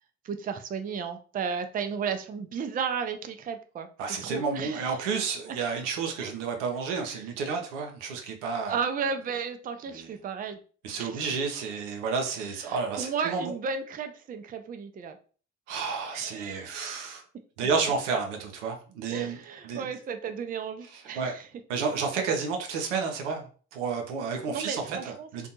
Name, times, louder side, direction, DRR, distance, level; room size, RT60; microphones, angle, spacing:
voice 1, 0.2-3.9 4.2-4.9 5.5-5.6 8.7-10.6 10.9-11.8 12.6-15.2 16.1-16.9 19.1-21.5 24.5-25.5, right 6 dB, 25° right, 8 dB, 0.4 m, -34 dB
voice 2, 4.0-8.8 9.9-10.1 10.8-13.5 15.7-17.2 17.6-19.4 19.6-19.9 20.9-21.3 21.7-25.5, right 5 dB, 85° right, 3 dB, 0.6 m, -31 dB
2.5 x 2.2 x 2.7 m, 0.40 s
hypercardioid pair, 50°, 35 cm